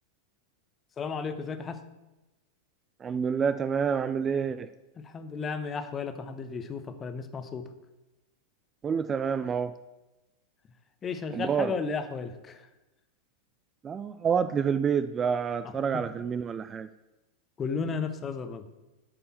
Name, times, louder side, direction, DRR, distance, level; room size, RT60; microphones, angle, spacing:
voice 1, 1.0-1.8 5.0-7.7 11.0-12.7 15.6-16.1 17.6-18.7, left 5 dB, 20° left, 9 dB, 0.9 m, -34 dB
voice 2, 3.0-4.7 8.8-9.7 11.3-11.7 13.8-16.9, right 6 dB, 20° right, 12 dB, 0.4 m, -28 dB
8.6 x 5.4 x 7.1 m, 1.0 s
figure-of-eight pair, 90°, 0 cm